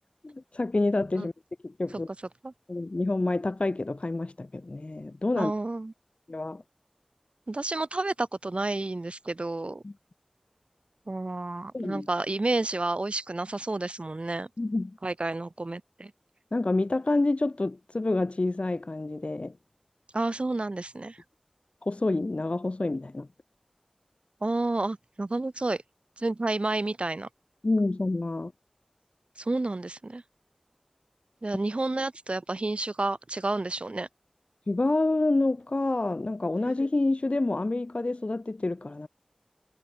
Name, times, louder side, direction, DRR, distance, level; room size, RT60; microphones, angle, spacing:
voice 1, 0.2-1.3 1.6-2.1 2.7-5.5 6.3-6.6 9.8-9.9 11.7-12.1 14.6-15.0 16.5-19.5 21.8-23.3 27.6-28.5 34.7-39.1, left 2 dB, 65° left, 4.3 m, -28 dB
voice 2, 5.4-5.9 7.5-9.8 11.1-14.5 15.0-16.1 20.1-21.2 24.4-25.8 26.2-27.3 29.4-30.2 31.4-34.1, right 2 dB, 60° right, 2.5 m, -30 dB
wide cardioid pair, 45°, 2 cm